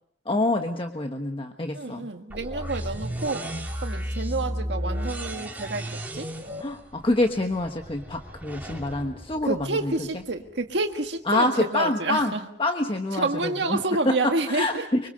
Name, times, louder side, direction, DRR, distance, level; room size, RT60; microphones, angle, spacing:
voice 1, 0.3-2.1 6.6-9.9 11.3-12.3 12.6-15.1, left 2 dB, 30° left, 5 dB, 1.3 m, -26 dB
voice 2, 1.7-3.5 3.8-6.3 9.4-12.5 13.1-14.9, right 2 dB, 75° right, 5 dB, 1.7 m, -29 dB
sound 1, 2.3-10.2, equal, 10° right, 4.1 m, -34 dB
25.0 x 25.0 x 6.5 m, 0.71 s
head